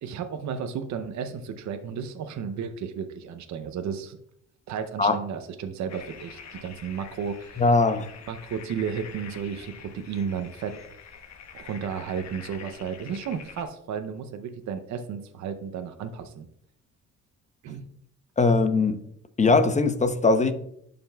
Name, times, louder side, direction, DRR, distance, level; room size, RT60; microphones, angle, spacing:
voice 1, 0.0-4.2 4.7-7.6 8.3-10.7 11.5-16.5 17.6-17.9, right 7 dB, 70° right, 0.7 m, -33 dB
sound 1, 5.9-13.7, left 7 dB, 65° left, 1.1 m, -46 dB
voice 2, 7.6-8.1 18.4-19.0 19.4-20.5, left 3 dB, 25° left, 0.7 m, -20 dB
11.5 x 5.2 x 2.3 m
cardioid pair, 90°, 30 cm